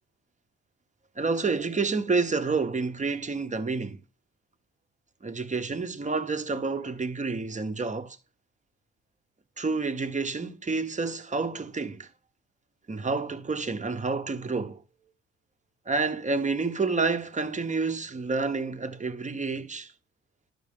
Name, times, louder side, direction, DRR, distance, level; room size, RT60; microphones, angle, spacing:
voice 1, 1.2-4.0 5.2-8.2 9.6-12.1 12.9-14.8 15.9-19.9, right 4 dB, 25° right, 1.2 m, -29 dB
11.5 x 6.2 x 3.6 m
cardioid pair, 85°, 30 cm